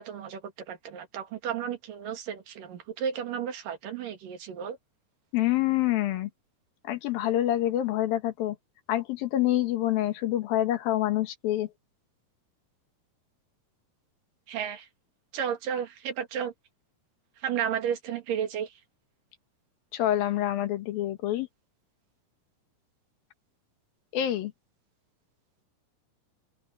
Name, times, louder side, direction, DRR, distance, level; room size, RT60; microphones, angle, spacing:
voice 1, 0.0-4.8 14.5-14.9 15.3-16.5 17.4-18.7, right 8 dB, 70° right, 3.7 m, -33 dB
voice 2, 5.3-6.3 6.8-8.6 8.9-11.7 19.9-21.5 24.1-24.5, left 13 dB, 90° left, 3.3 m, -26 dB
open air
omnidirectional pair, 4.0 m